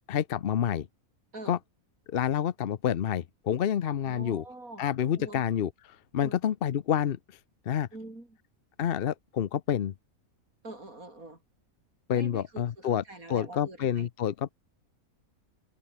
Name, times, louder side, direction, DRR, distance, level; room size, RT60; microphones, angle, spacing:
voice 1, 0.1-0.9 1.5-1.6 2.1-4.4 4.8-5.7 6.1-7.2 7.7-7.9 8.8-9.9 12.1-13.0 13.3-14.5, left 9 dB, 50° left, 0.8 m, -28 dB
voice 2, 4.0-4.8 5.2-5.4 6.2-6.4 7.9-8.4 10.6-11.4 12.1-14.1, right 2 dB, 75° right, 6.9 m, -45 dB
omnidirectional pair, 1.5 m